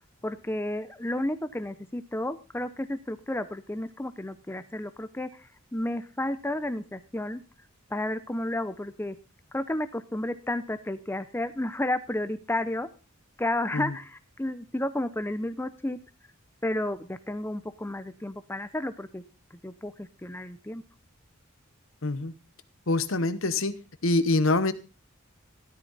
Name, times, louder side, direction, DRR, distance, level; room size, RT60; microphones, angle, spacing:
voice 1, 0.2-7.4 7.9-9.2 9.5-12.9 13.4-16.0 16.6-19.2 19.6-20.8, left 1 dB, 10° left, 12 dB, 0.6 m, -32 dB
voice 2, 22.0-22.3 22.9-23.7 24.0-24.7, left 2 dB, 70° left, 14 dB, 1.0 m, -25 dB
13.5 x 12.5 x 4.0 m, 0.31 s
head